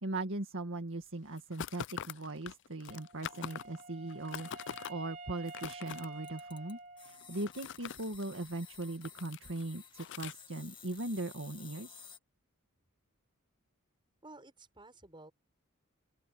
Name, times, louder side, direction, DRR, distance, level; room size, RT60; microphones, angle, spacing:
voice 1, 0.0-4.5 4.9-12.0, right 2 dB, 60° right, 2.0 m, -39 dB
sound 1, 1.4-3.8 4.1-4.9 5.4-6.1 7.1-8.5 8.8-9.6 10.0-10.3, left 9 dB, 55° left, 0.4 m, -43 dB
Wind instrument woodwind instrument, 2.9-7.7, right 2 dB, 40° right, 3.3 m, -50 dB
sound 2, 6.2-12.2, left 6 dB, 25° left, 2.1 m, -54 dB
voice 2, 14.2-15.3, right 2 dB, 20° right, 7.0 m, -53 dB
open air
head